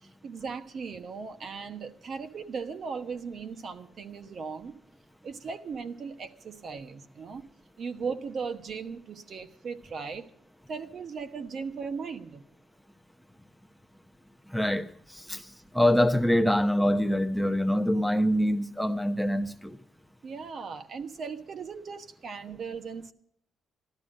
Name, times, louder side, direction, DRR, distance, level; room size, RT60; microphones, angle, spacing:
voice 1, 0.0-4.8 5.2-7.4 7.8-10.3 10.7-12.4 20.2-23.1, right 5 dB, 55° right, 1.1 m, -37 dB
voice 2, 14.5-19.8, equal, ahead, 0.8 m, -25 dB
13.0 x 12.5 x 6.3 m
cardioid pair, 90°, 0 cm